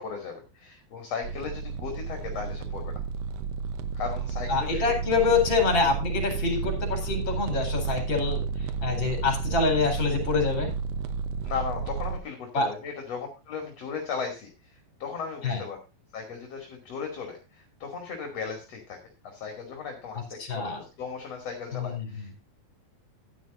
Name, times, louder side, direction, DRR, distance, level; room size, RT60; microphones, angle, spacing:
voice 1, 0.0-3.0 3.9-5.3 11.4-14.5 15.0-15.8 16.1-19.0 19.2-22.4, left 5 dB, 45° left, 3 dB, 3.3 m, -36 dB
sound 1, 1.2-12.2, right 5 dB, 85° right, 1.4 m, -32 dB
voice 2, 4.5-8.4 8.8-10.7 12.5-12.7 15.4-15.6 20.4-20.8 21.7-22.1, left 4 dB, 30° left, 5 dB, 4.8 m, -26 dB
15.0 x 10.5 x 2.6 m, 0.29 s
omnidirectional pair, 4.2 m